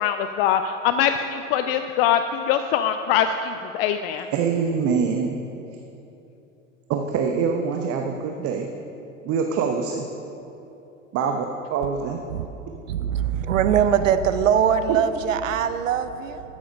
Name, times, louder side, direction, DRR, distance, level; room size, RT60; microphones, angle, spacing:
voice 1, 0.0-4.3, left 9 dB, 50° left, 9 dB, 0.5 m, -23 dB
voice 2, 4.3-5.3 6.9-8.7 9.2-10.1 11.1-11.4 11.7-12.2, right 6 dB, 35° right, 4 dB, 0.8 m, -24 dB
voice 3, 12.9-16.4, right 8 dB, 75° right, 11 dB, 0.7 m, -22 dB
13.0 x 7.3 x 5.2 m, 2.9 s
figure-of-eight pair, 80°, 39 cm